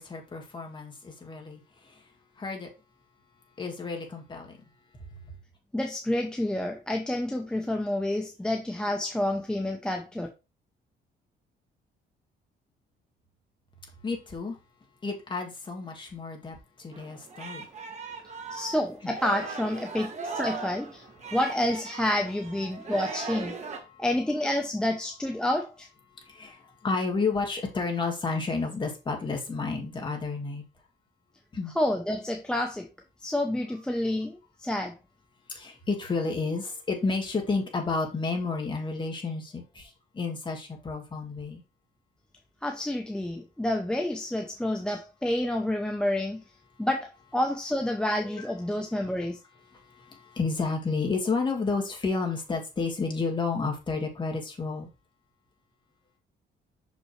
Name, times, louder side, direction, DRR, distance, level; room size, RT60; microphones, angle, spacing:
voice 1, 0.0-1.6 2.4-2.7 3.6-4.6 14.0-14.6 15.0-17.7 23.9-24.0 26.3-30.6 31.5-31.7 35.5-41.6 48.3-48.4 49.7-54.9, left 4 dB, 25° left, 1.8 m, -31 dB
voice 2, 5.7-10.3 18.5-21.0 21.3-23.5 24.0-25.9 31.7-32.9 33.2-34.9 42.6-46.4 46.8-49.4, left 1 dB, 5° left, 0.7 m, -29 dB
Singing, 16.9-23.8, right 4 dB, 40° right, 1.4 m, -38 dB
6.1 x 5.4 x 3.2 m
cardioid pair, 150°, 19 cm